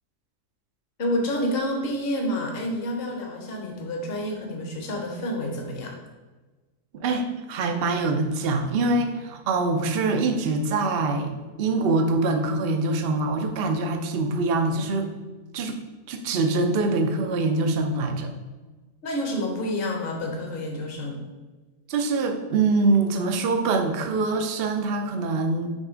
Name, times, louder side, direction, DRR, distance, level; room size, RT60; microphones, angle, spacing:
voice 1, 1.0-5.9 19.0-21.2, left 1 dB, 40° left, 1 dB, 1.1 m, -29 dB
voice 2, 6.9-11.3 11.6-15.1 15.5-15.8 16.1-18.3 21.9-25.7, right 3 dB, 55° right, 5 dB, 0.7 m, -24 dB
6.6 x 3.5 x 5.0 m, 1.3 s
omnidirectional pair, 1.7 m